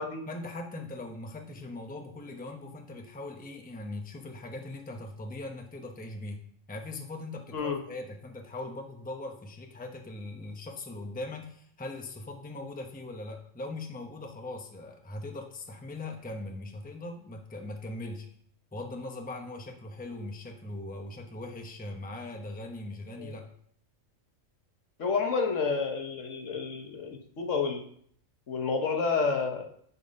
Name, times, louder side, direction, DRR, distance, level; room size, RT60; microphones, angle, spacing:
voice 1, 0.3-6.4 6.7-18.3 18.7-23.5, left 2 dB, 10° left, 3 dB, 0.8 m, -40 dB
voice 2, 25.0-27.8 28.5-29.6, left 5 dB, 70° left, 3 dB, 1.5 m, -29 dB
11.0 x 4.3 x 5.2 m, 0.64 s
omnidirectional pair, 1.4 m